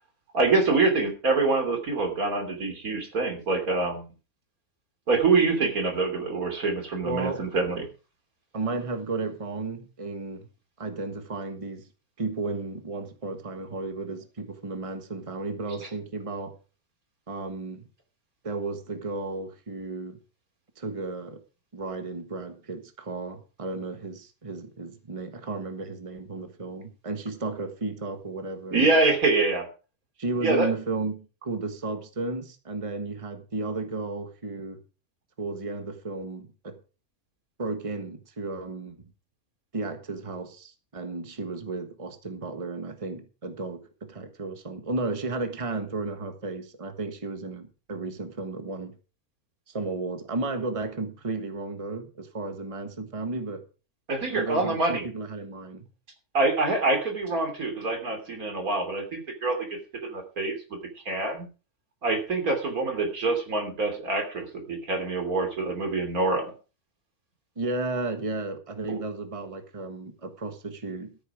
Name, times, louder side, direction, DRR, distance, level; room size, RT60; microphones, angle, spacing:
voice 1, 0.3-4.0 5.1-7.9 28.7-29.7 30.4-30.7 54.1-55.1 56.3-60.8 61.1-61.5 62.0-66.5 68.9-69.0, right 3 dB, 80° right, 3.5 m, -25 dB
voice 2, 7.0-7.4 8.5-10.5 10.8-11.9 12.2-16.5 17.3-17.9 18.4-20.2 20.8-21.4 21.7-28.9 30.2-34.8 35.4-36.8 37.6-39.0 39.7-49.0 49.7-53.6 54.3-55.9 67.6-71.2, right 3 dB, 25° right, 1.5 m, -33 dB
13.5 x 9.4 x 4.9 m
omnidirectional pair, 1.5 m